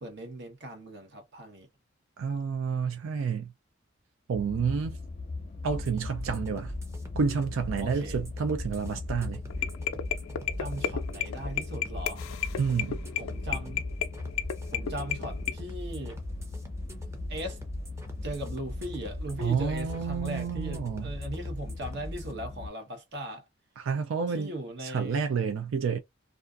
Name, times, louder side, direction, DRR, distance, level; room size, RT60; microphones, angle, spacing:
voice 1, 0.0-1.7 7.8-8.2 10.6-12.3 13.2-13.8 14.7-16.2 17.3-17.6 18.2-23.4 24.3-25.2, right 1 dB, 55° right, 0.9 m, -38 dB
voice 2, 2.2-3.5 4.3-5.0 5.6-6.7 7.2-9.4 12.6-13.0 19.4-21.1 23.8-24.5 24.8-26.0, right 6 dB, 75° right, 0.4 m, -29 dB
sound 1, 4.3-22.7, left 3 dB, 30° left, 0.5 m, -39 dB
sound 2, 5.6-22.3, equal, 15° right, 0.7 m, -41 dB
sound 3, 9.5-15.5, left 10 dB, 85° left, 0.4 m, -33 dB
2.4 x 2.3 x 2.4 m
head